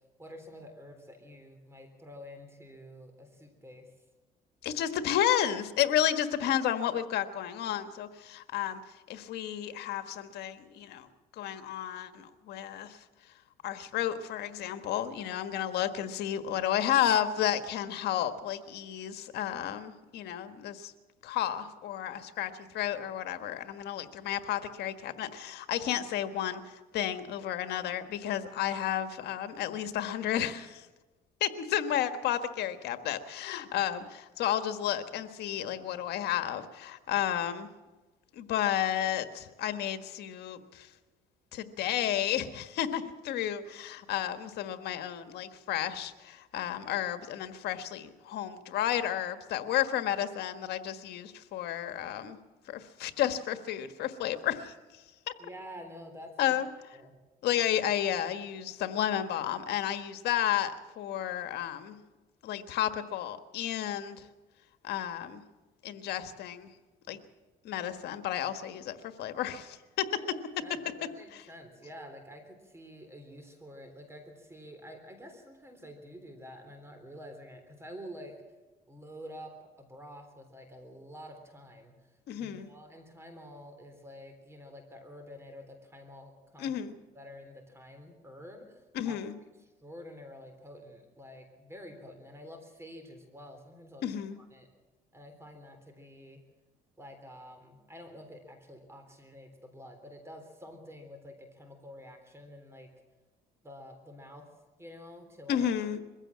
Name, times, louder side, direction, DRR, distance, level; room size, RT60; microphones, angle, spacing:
voice 1, 0.2-3.9 55.4-56.5 56.9-57.1 70.1-78.4 78.9-82.1 82.4-86.7 87.1-89.2 89.6-94.0 94.4-94.7 95.1-96.4 97.0-102.9 103.6-104.5 104.8-105.7, equal, 15° right, 6 dB, 3.6 m, -49 dB
voice 2, 4.6-8.8 9.1-11.1 11.4-13.0 13.6-20.9 21.2-30.8 31.4-37.7 38.3-40.9 41.5-52.4 52.7-54.7 55.3-55.4 56.4-56.7 57.4-62.0 62.4-64.3 64.8-65.4 65.8-66.7 67.1-67.2 67.6-70.1 82.3-82.7 86.6-86.9 88.9-89.3 94.0-94.4 105.5-106.0, left 11 dB, 75° left, 9 dB, 1.5 m, -32 dB
22.5 x 15.5 x 7.4 m, 1.2 s
cardioid pair, 110°, 17 cm